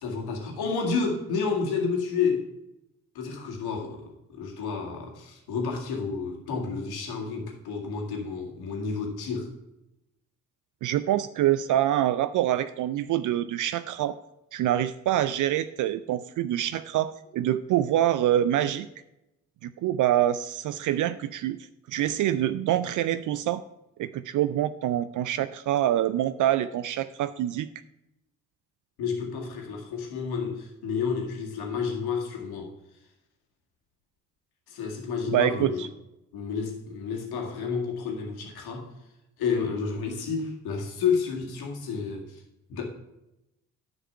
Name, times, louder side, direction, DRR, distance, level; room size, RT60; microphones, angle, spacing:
voice 1, 0.0-2.5 3.2-9.5 29.0-32.7 34.7-35.9 36.3-38.9 39.4-42.4 42.7-42.9, left 5 dB, 65° left, 1 dB, 1.9 m, -30 dB
voice 2, 10.8-14.2 14.5-18.9 19.6-21.6 21.9-23.6 24.0-27.7 35.3-35.9, right 12 dB, 50° right, 14 dB, 0.4 m, -25 dB
9.8 x 5.2 x 5.6 m, 0.90 s
hypercardioid pair, 45°, 40 cm